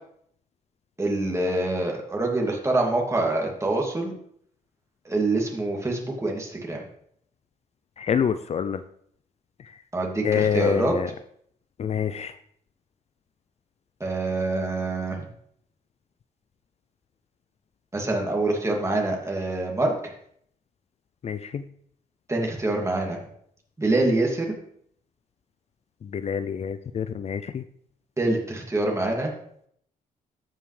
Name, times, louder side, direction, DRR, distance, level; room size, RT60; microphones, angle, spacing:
voice 1, 1.0-4.1 5.0-6.8 9.9-11.0 14.0-15.2 17.9-20.1 22.3-23.2 23.8-24.5 28.2-29.3, right 2 dB, 20° right, 0 dB, 2.4 m, -25 dB
voice 2, 8.0-8.8 10.2-11.1 11.8-12.3 21.2-21.6 26.1-27.6, left 7 dB, 45° left, 11 dB, 0.4 m, -26 dB
14.5 x 5.5 x 3.3 m, 0.66 s
cardioid pair, 85°, 15 cm